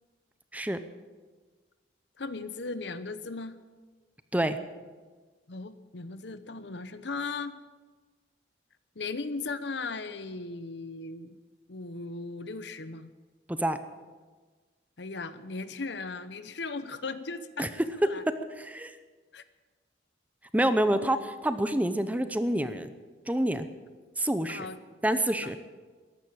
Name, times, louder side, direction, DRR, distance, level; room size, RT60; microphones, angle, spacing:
voice 1, 2.2-3.5 5.5-7.6 9.0-11.4 11.7-13.1 15.0-17.7 18.0-18.2 19.3-19.4 20.6-21.1 24.5-24.8 25.4-25.5, left 3 dB, 65° left, 13 dB, 0.9 m, -37 dB
voice 2, 18.6-18.9 20.5-22.9 23.3-23.7 24.2-24.7 25.0-25.6, right 1 dB, 10° right, 11 dB, 0.7 m, -27 dB
14.5 x 11.5 x 8.9 m, 1.4 s
head